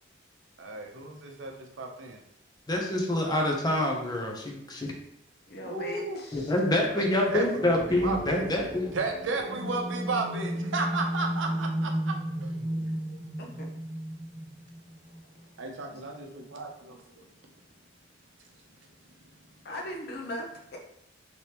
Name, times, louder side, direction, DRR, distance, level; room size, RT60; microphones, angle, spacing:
voice 1, 0.6-2.2 5.6-6.2 6.8-8.5 8.9-12.1 12.4-12.6 15.6-17.2, right 3 dB, 80° right, 2 dB, 0.6 m, -34 dB
voice 2, 2.7-4.9 6.3-8.9, left 1 dB, 20° left, 0 dB, 0.6 m, -26 dB
voice 3, 5.5-6.5 13.4-13.7 19.6-20.8, left 1 dB, 55° left, 1 dB, 0.7 m, -39 dB
sound 1, 7.7-15.5, right 1 dB, 35° right, 0.7 m, -34 dB
3.4 x 3.0 x 2.9 m, 0.78 s
head